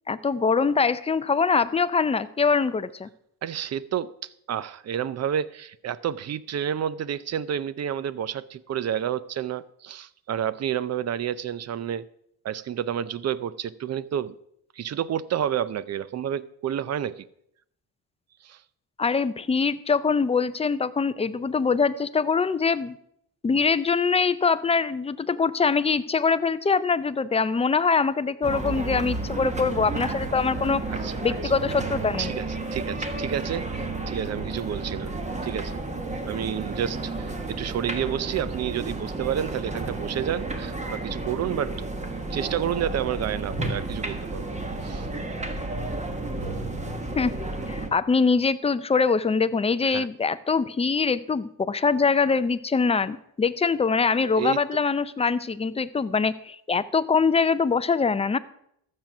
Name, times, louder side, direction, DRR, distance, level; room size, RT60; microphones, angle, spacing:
voice 1, 0.1-3.1 19.0-23.0 23.4-30.8 31.2-32.3 47.2-47.3 47.7-58.4, left 5 dB, 15° left, 0.4 m, -23 dB
voice 2, 3.4-12.1 12.4-14.4 14.7-17.3 18.4-18.6 30.9-31.1 31.4-31.5 32.2-35.1 35.4-35.7 36.3-41.9 42.3-45.1 49.8-50.1 54.3-54.6, right 9 dB, 40° right, 0.5 m, -30 dB
sound 1, 28.4-47.9, right 2 dB, 15° right, 1.3 m, -32 dB
12.5 x 7.5 x 5.9 m
cardioid pair, 120°, 39 cm